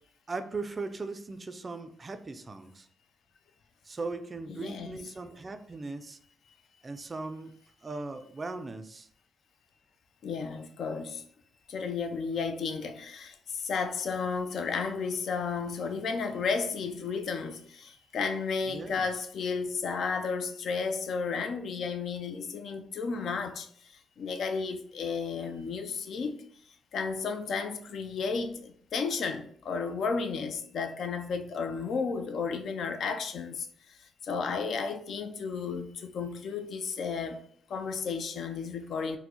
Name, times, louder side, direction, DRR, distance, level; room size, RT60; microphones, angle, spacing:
voice 1, 0.3-2.9 3.9-6.2 6.8-7.5 7.8-9.1 18.7-19.1, right 3 dB, 30° right, 0.3 m, -38 dB
voice 2, 4.5-5.1 10.2-11.2 11.7-23.7 24.2-26.4 26.9-34.0 34.2-37.4 37.7-39.2, left 5 dB, 65° left, 0.3 m, -33 dB
4.3 x 2.0 x 2.8 m
cardioid pair, 90°, 0 cm